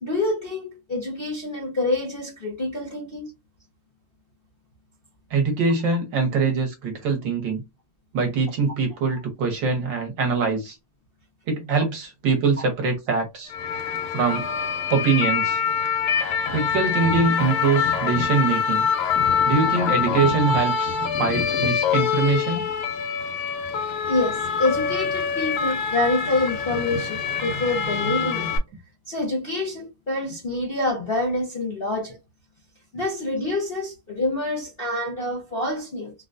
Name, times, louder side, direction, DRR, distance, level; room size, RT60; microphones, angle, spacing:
voice 1, 0.0-3.3 24.1-28.5 29.1-32.2 32.9-36.1, left 2 dB, 40° left, 0.8 m, -26 dB
voice 2, 5.3-7.6 8.1-10.7 11.5-13.5 14.1-14.5 14.9-15.6 16.5-18.9 19.4-20.9 21.2-22.6, right 4 dB, 65° right, 1.6 m, -23 dB
sound 1, 13.5-28.6, left 6 dB, 85° left, 1.6 m, -25 dB
3.9 x 2.2 x 2.5 m
omnidirectional pair, 2.3 m